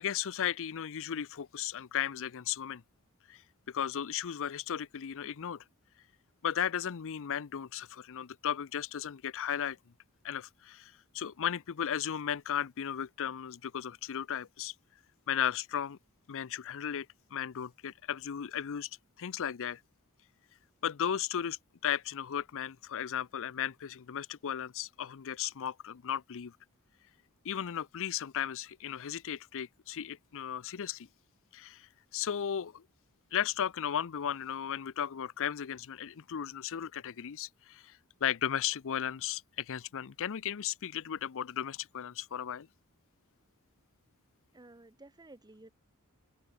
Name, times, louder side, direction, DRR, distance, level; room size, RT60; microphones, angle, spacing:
voice 1, 0.0-2.8 3.3-3.4 3.7-5.6 6.4-9.8 10.2-14.7 15.3-16.0 16.3-17.1 17.3-18.9 19.2-19.8 20.8-26.6 27.4-31.1 31.5-31.9 32.1-32.8 33.3-42.7, left 9 dB, 65° left, 0.5 m, -35 dB
voice 2, 44.5-45.7, right 2 dB, 20° right, 1.1 m, -54 dB
head